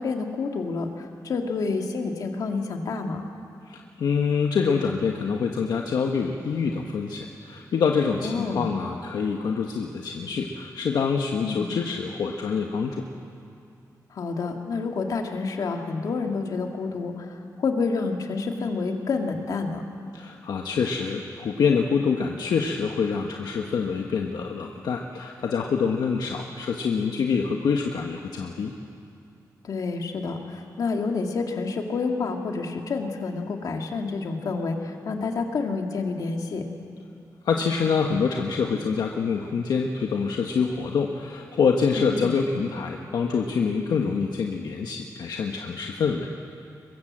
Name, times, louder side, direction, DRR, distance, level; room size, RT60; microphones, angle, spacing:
voice 1, 0.0-3.2 8.2-8.6 11.4-11.7 14.1-19.8 29.6-36.7 42.0-42.3, left 4 dB, 60° left, 3 dB, 2.3 m, -29 dB
voice 2, 3.7-13.0 20.1-28.7 37.4-46.3, left 5 dB, 80° left, 2 dB, 1.3 m, -26 dB
23.0 x 22.5 x 7.6 m, 2.5 s
wide cardioid pair, 175°, 7 cm